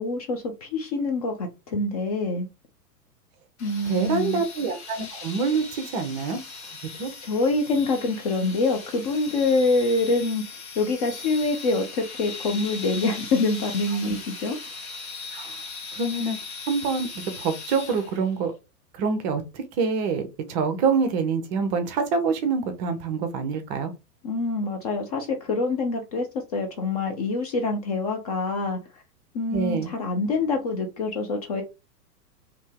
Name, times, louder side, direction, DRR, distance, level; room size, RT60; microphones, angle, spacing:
voice 1, 0.0-2.5 3.6-4.4 7.2-10.4 10.8-14.6 24.2-26.3 26.5-28.8 29.3-31.6, left 3 dB, 25° left, 0.4 m, -25 dB
sound 1, 3.6-18.3, left 4 dB, 45° left, 1.4 m, -39 dB
voice 2, 3.9-6.4 7.0-7.1 15.3-15.6 15.9-16.4 16.7-18.5 18.9-23.9 29.5-29.9, right 5 dB, 25° right, 0.6 m, -26 dB
2.8 x 2.7 x 3.4 m
figure-of-eight pair, 100°, 48 cm